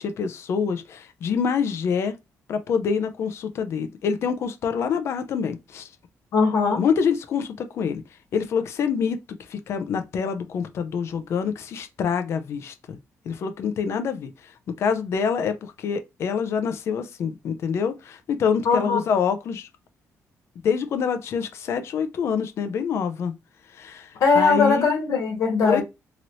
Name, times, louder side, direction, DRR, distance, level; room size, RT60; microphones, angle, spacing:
voice 1, 0.0-2.1 2.5-5.9 6.8-8.0 8.3-9.2 9.5-13.0 13.3-14.3 14.8-19.7 20.6-23.3 23.7-24.9 25.6-25.8, left 6 dB, 50° left, 0.5 m, -26 dB
voice 2, 6.3-6.8 18.6-19.0 24.2-25.8, left 4 dB, 70° left, 1.3 m, -20 dB
2.9 x 2.6 x 3.0 m
cardioid pair, 170°, 6 cm